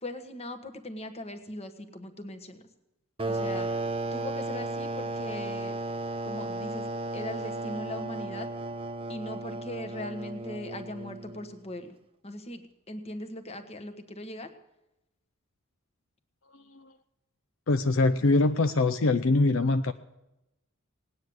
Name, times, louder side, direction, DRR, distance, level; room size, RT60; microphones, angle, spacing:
voice 1, 0.0-2.6 3.3-3.7 4.1-5.8 6.2-8.5 9.1-12.0 12.2-14.5, left 1 dB, 30° left, 7 dB, 1.3 m, -39 dB
sound 1, 3.2-11.6, right 2 dB, 25° right, 0.7 m, -34 dB
voice 2, 17.7-19.9, left 2 dB, 65° left, 10 dB, 0.6 m, -23 dB
18.5 x 9.6 x 7.9 m, 0.92 s
head